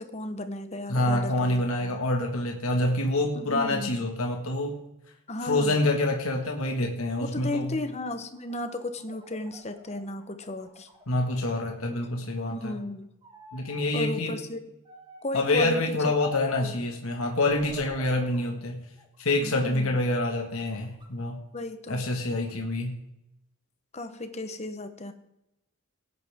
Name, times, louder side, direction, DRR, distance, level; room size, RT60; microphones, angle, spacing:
voice 1, 0.0-2.0 3.3-4.0 5.3-5.8 7.2-10.9 12.5-13.1 13.9-14.6 15.2-16.1 16.6-16.7 19.4-20.0 21.5-22.0 23.9-25.1, left 2 dB, 30° left, 9 dB, 1.0 m, -34 dB
voice 2, 0.9-4.8 5.4-7.8 11.1-12.8 13.5-14.4 15.3-18.9 19.2-21.4 21.9-23.0, left 2 dB, 70° left, 2 dB, 1.7 m, -27 dB
sound 1, 8.3-11.6 11.9-12.8 13.2-13.9 14.8-15.4 16.1-16.7 17.4-18.5 19.0-19.9 20.4-21.1, right 1 dB, 20° right, 1.7 m, -49 dB
17.5 x 9.7 x 3.6 m, 0.86 s
head